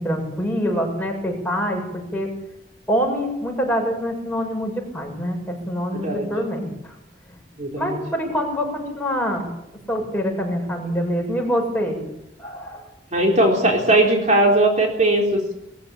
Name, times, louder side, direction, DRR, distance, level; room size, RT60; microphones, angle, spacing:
voice 1, 0.0-2.3 2.9-6.9 7.8-9.5 9.9-12.0 12.4-12.9, equal, 10° left, 0 dB, 7.3 m, -25 dB
voice 2, 7.6-8.0 13.1-15.5, right 1 dB, 40° right, 1 dB, 4.0 m, -18 dB
22.5 x 15.0 x 8.7 m, 0.85 s
head